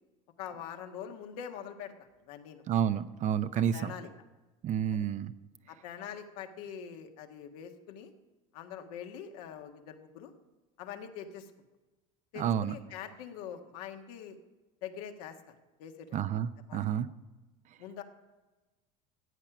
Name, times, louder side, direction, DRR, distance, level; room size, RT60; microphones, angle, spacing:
voice 1, 0.4-2.6 3.7-4.1 4.9-5.1 5.7-8.1 8.5-10.3 10.8-11.5 12.3-14.4 14.8-15.4 15.8-16.2 16.7-17.0 17.8-18.0, left 8 dB, 80° left, 4 dB, 1.5 m, -44 dB
voice 2, 2.7-3.9 4.6-5.3 12.4-12.8 16.1-17.1, right 9 dB, 40° right, 13 dB, 0.6 m, -30 dB
14.0 x 8.8 x 6.0 m, 1.2 s
supercardioid pair, 110°, 19 cm